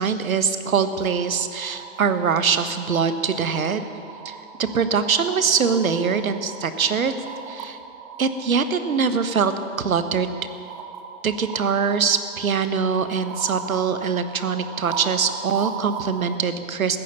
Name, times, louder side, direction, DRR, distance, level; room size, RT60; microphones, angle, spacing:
voice 1, 0.0-3.9 4.2-7.2 7.5-7.8 8.2-9.5 9.8-10.3 11.2-17.0, right 6 dB, 85° right, 10 dB, 1.3 m, -23 dB
sound 1, 0.8-16.4, right 6 dB, 10° right, 0.4 m, -38 dB
14.5 x 11.0 x 8.1 m, 2.2 s
hypercardioid pair, 130°, 40 cm